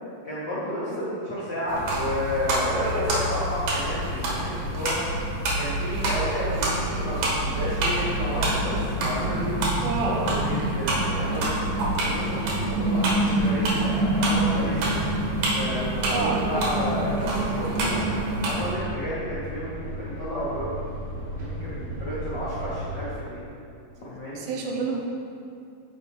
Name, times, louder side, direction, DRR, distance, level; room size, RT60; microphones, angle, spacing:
voice 1, 0.2-5.0 5.6-9.6 10.0-11.5 12.0-15.0 15.5-18.0 18.5-20.8 21.1-23.4 24.0-24.4, equal, 80° left, -11 dB, 0.9 m, -32 dB
sound 1, 1.7-18.7, right 1 dB, 65° right, 2.3 m, -26 dB
voice 2, 2.7-3.1 9.8-10.4 16.1-16.5 24.4-25.0, right 4 dB, 80° right, 1 dB, 2.5 m, -28 dB
sound 2, 3.4-23.2, right 1 dB, 45° right, 1.2 m, -37 dB
9.0 x 5.4 x 3.2 m, 2.5 s
omnidirectional pair, 4.3 m